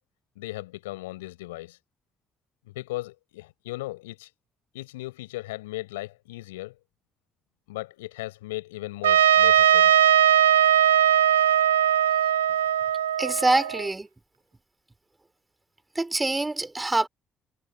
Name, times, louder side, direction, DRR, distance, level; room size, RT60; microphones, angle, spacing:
voice 1, 0.3-1.8 2.7-4.3 4.7-6.7 7.7-9.9, left 18 dB, 80° left, 4.9 m, -37 dB
Trumpet, 9.0-13.9, right 10 dB, 85° right, 1.0 m, -19 dB
voice 2, 13.2-14.1 16.0-17.1, right 2 dB, 20° right, 4.1 m, -25 dB
hypercardioid pair, 50°, 0 cm